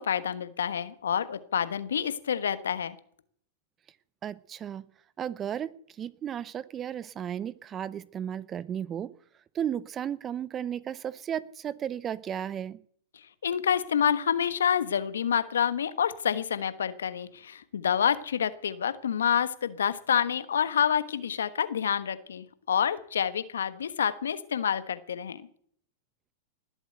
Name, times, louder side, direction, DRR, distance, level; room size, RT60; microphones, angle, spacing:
voice 1, 0.0-2.9 13.4-25.4, left 8 dB, 85° left, 1.3 m, -28 dB
voice 2, 4.2-4.8 5.2-9.1 9.5-12.8, right 9 dB, 30° right, 0.8 m, -34 dB
20.0 x 8.1 x 7.9 m
hypercardioid pair, 115°, 0 cm